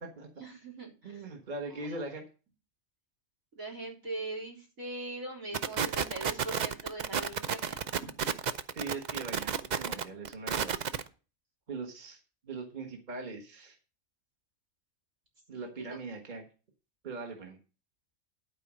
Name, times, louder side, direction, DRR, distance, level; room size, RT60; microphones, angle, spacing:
voice 1, 0.4-1.2 1.7-1.9 3.5-7.8 15.5-15.7, right 2 dB, 75° right, 2 dB, 4.0 m, -41 dB
voice 2, 1.0-2.2 8.7-11.0 11.7-12.2 12.4-13.8 15.5-16.5 17.0-17.6, right 3 dB, 35° right, 2 dB, 1.5 m, -40 dB
sound 1, 5.5-11.1, right 7 dB, 60° right, 0.4 m, -31 dB
12.0 x 4.7 x 6.3 m, 0.35 s
omnidirectional pair, 1.4 m